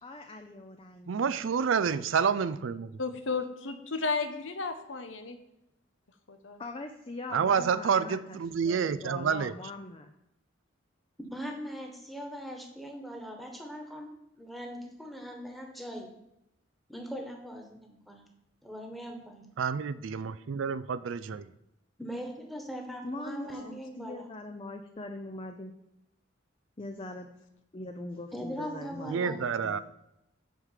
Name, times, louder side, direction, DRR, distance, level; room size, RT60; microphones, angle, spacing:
voice 1, 0.0-1.4 6.6-10.1 23.0-25.7 26.8-27.3 27.7-29.8, left 2 dB, 30° left, 5 dB, 0.6 m, -42 dB
voice 2, 1.1-2.9 7.3-9.5 19.6-21.4 29.1-29.8, right 6 dB, 90° right, 14 dB, 0.4 m, -28 dB
voice 3, 3.0-5.4 6.3-6.6 23.4-23.7, left 4 dB, 90° left, 7 dB, 1.0 m, -34 dB
voice 4, 11.3-14.1 14.4-16.1 16.9-18.3 18.6-19.4 22.0-24.3 28.3-29.4, equal, ahead, 2 dB, 1.4 m, -40 dB
8.0 x 5.0 x 7.5 m, 0.86 s
head